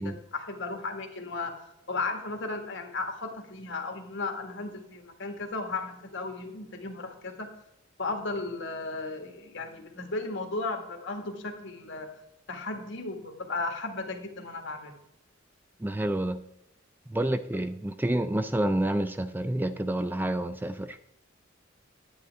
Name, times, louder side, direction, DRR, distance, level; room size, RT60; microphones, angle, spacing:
voice 1, 0.0-1.6 1.9-7.5 8.0-12.1 12.5-15.0, left 3 dB, 65° left, 4 dB, 1.7 m, -35 dB
voice 2, 15.8-16.4 17.1-21.0, right 1 dB, 10° right, 10 dB, 0.4 m, -28 dB
10.0 x 9.6 x 3.5 m, 0.81 s
head